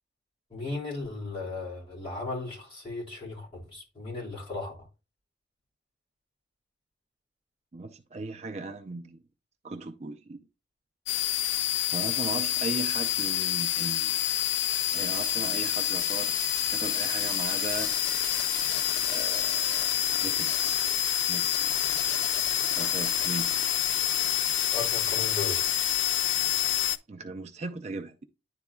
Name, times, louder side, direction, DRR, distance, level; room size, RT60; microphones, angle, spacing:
voice 1, 0.5-4.8 24.7-25.6, left 3 dB, 30° left, 2.7 m, -36 dB
voice 2, 7.7-9.2 9.6-10.4 11.9-14.2 14.9-16.4 16.7-17.9 19.1-19.9 20.2-20.8 21.3-21.6 22.8-23.5 27.1-28.1, right 3 dB, 35° right, 0.4 m, -37 dB
sound 1, 11.1-27.0, left 10 dB, 90° left, 0.4 m, -27 dB
10.5 x 4.0 x 2.3 m
head